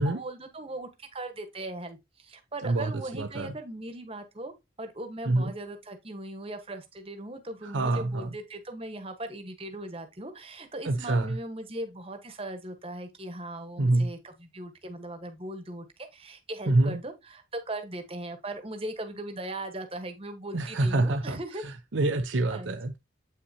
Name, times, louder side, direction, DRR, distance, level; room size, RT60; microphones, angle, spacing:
voice 1, 0.0-4.5 4.8-21.6 22.5-22.8, right 1 dB, 30° right, 1.3 m, -39 dB
voice 2, 2.6-3.5 5.3-5.5 7.6-8.4 10.8-11.4 13.8-14.1 16.7-17.0 20.5-23.0, right 2 dB, 75° right, 0.7 m, -26 dB
8.3 x 5.7 x 2.8 m
head